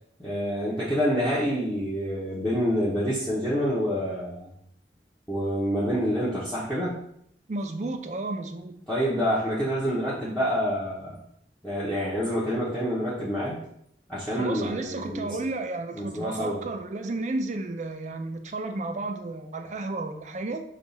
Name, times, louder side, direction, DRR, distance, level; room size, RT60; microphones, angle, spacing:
voice 1, 0.2-4.5 5.3-7.0 8.9-11.2 11.6-13.6 14.1-15.3 15.9-16.6, equal, 5° left, -10 dB, 0.8 m, -27 dB
voice 2, 7.5-8.8 14.3-20.6, right 2 dB, 40° right, 6 dB, 0.4 m, -32 dB
5.3 x 2.4 x 4.0 m, 0.72 s
head